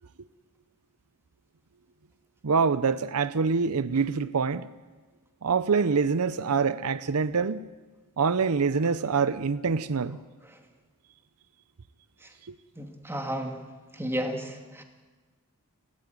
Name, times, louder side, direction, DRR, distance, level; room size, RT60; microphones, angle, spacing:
voice 1, 2.4-4.7 5.4-7.7 8.2-10.2 12.5-12.6, right 5 dB, 75° right, 0.7 m, -25 dB
voice 2, 12.8-13.6 13.9-14.8, equal, 10° right, 2.5 m, -33 dB
29.5 x 14.0 x 9.5 m
head